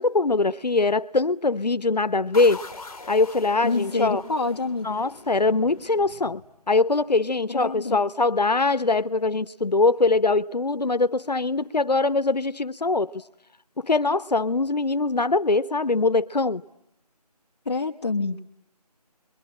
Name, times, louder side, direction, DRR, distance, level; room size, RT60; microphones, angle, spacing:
voice 1, 0.0-2.6 3.1-4.2 4.8-6.4 6.7-13.2 13.8-16.6, left 3 dB, 85° left, 1.0 m, -22 dB
sound 1, 2.3-6.9, left 3 dB, 60° left, 1.3 m, -43 dB
voice 2, 3.6-5.0 7.5-8.0 17.6-18.4, left 3 dB, 40° left, 1.0 m, -27 dB
28.0 x 22.5 x 8.8 m
figure-of-eight pair, 165°, 21 cm